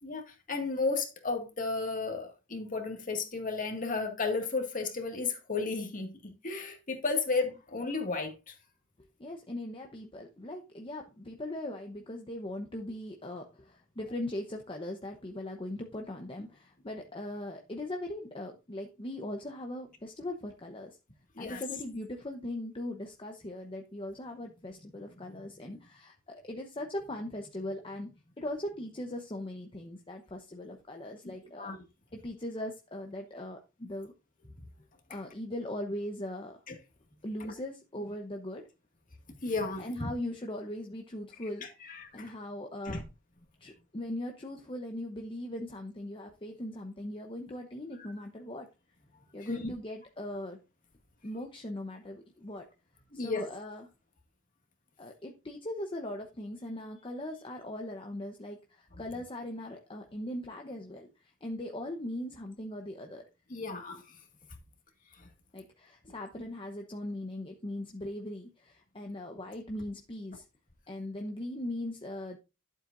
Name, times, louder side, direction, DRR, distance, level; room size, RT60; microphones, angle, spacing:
voice 1, 0.0-8.5 21.4-21.6 31.2-31.8 36.7-36.8 37.4-37.5 39.3-40.1 41.6-42.3 42.9-43.0 49.4-49.7 53.1-53.5 63.5-64.2 65.2-65.3, left 3 dB, 40° left, 2.0 m, -34 dB
voice 2, 9.2-21.0 21.4-31.7 32.1-34.1 35.1-36.6 37.2-38.6 39.8-41.7 42.1-43.0 43.6-48.7 49.3-50.6 51.2-52.7 53.1-53.9 55.0-63.2 65.5-70.4 70.9-72.4, left 1 dB, 25° left, 0.9 m, -39 dB
12.0 x 7.7 x 2.6 m
head